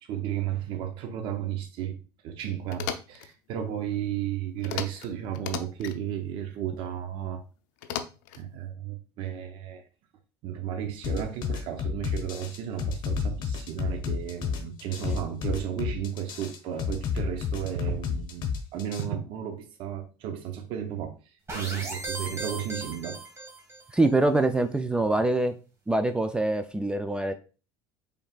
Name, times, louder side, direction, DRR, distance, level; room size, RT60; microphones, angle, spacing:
voice 1, 0.0-7.4 8.3-9.8 10.4-23.5, right 10 dB, 60° right, 0.7 m, -34 dB
sound 1, 2.7-3.3 4.6-5.1 5.3-6.0 7.8-8.4, left 9 dB, 90° left, 0.5 m, -35 dB
sound 2, 11.0-19.0, left 6 dB, 50° left, 1.0 m, -30 dB
sound 3, 21.5-23.9, right 3 dB, 25° right, 1.7 m, -37 dB
voice 2, 23.9-25.6 25.9-27.3, right 2 dB, 10° right, 0.3 m, -24 dB
4.8 x 3.4 x 2.3 m
supercardioid pair, 105°, 10 cm